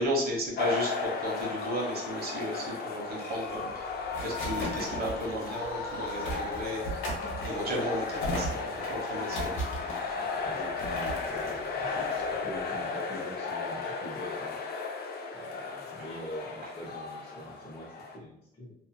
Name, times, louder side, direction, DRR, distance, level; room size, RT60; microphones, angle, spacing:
voice 1, 0.0-7.1 7.4-9.6 16.0-16.1 16.6-16.7, equal, 50° right, -2 dB, 1.1 m, -34 dB
sound 1, 0.6-18.2, left 4 dB, 55° left, 0.6 m, -35 dB
sound 2, 3.5-12.8, right 1 dB, 80° left, 1.0 m, -38 dB
voice 2, 10.2-14.6 15.3-18.8, equal, 25° left, -6 dB, 0.9 m, -44 dB
2.8 x 2.6 x 2.2 m, 0.73 s
cardioid pair, 90°, 20 cm